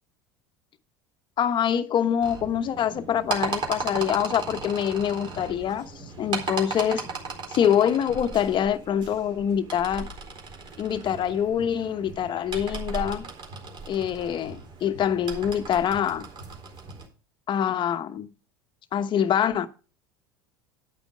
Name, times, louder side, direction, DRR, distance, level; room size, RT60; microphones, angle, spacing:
voice 1, 1.4-5.9 6.2-7.1 7.5-10.1 10.8-13.3 13.9-16.3 17.5-18.3 18.9-19.7, left 9 dB, 40° left, 1.0 m, -25 dB
sound 1, 2.2-17.1, right 4 dB, 40° right, 4.1 m, -36 dB
10.0 x 9.1 x 5.1 m
hypercardioid pair, 80°, 12 cm